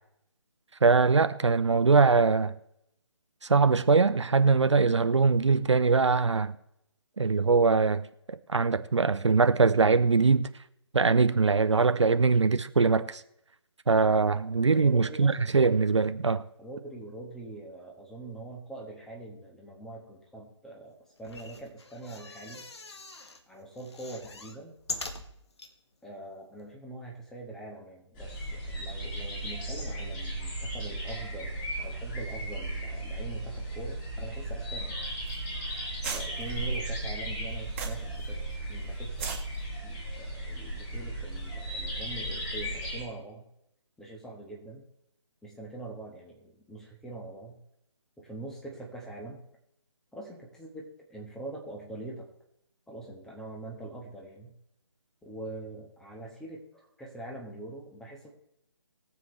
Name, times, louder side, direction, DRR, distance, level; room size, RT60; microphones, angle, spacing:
voice 1, 0.8-2.5 3.5-6.5 7.2-8.1 8.5-10.5 10.9-13.2 13.9-16.4, right 4 dB, 70° right, 0.6 m, -22 dB
voice 2, 14.6-15.5 16.6-22.6 23.5-24.8 26.0-35.0 36.1-39.4 39.8-43.5 44.0-44.8 45.4-47.6 48.2-49.4 50.1-52.3 52.9-54.5 55.2-58.3, right 2 dB, 5° left, 1.4 m, -43 dB
sound 1, 21.2-23.4 23.8-25.7 26.3-26.4 26.6-26.7, left 3 dB, 60° left, 1.5 m, -42 dB
sound 2, 28.1-43.0, right 1 dB, 20° left, 2.8 m, -36 dB
sound 3, 35.3-35.4 35.7-35.8 36.0-38.3 38.6-38.7 39.1-39.4, right 4 dB, 25° right, 1.8 m, -35 dB
21.5 x 7.6 x 3.2 m
figure-of-eight pair, 150°, 16 cm